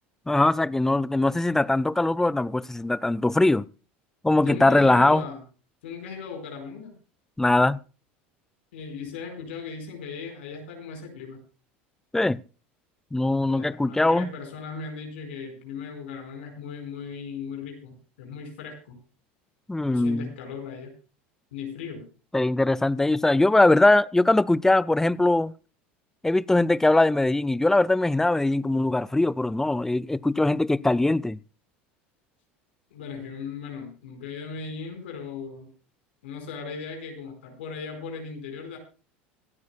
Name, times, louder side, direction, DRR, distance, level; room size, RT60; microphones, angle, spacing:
voice 1, 0.3-3.6 4.2-5.2 7.4-7.8 12.1-12.4 13.1-14.3 19.7-20.3 22.3-25.5 26.2-31.4, left 2 dB, 5° left, 0.5 m, -21 dB
voice 2, 4.3-5.4 5.8-6.9 8.7-11.4 13.5-19.0 19.8-20.9 21.5-22.1 32.9-35.7 36.2-38.8, left 5 dB, 80° left, 4.6 m, -37 dB
25.5 x 9.6 x 2.3 m
hypercardioid pair, 85°, 6 cm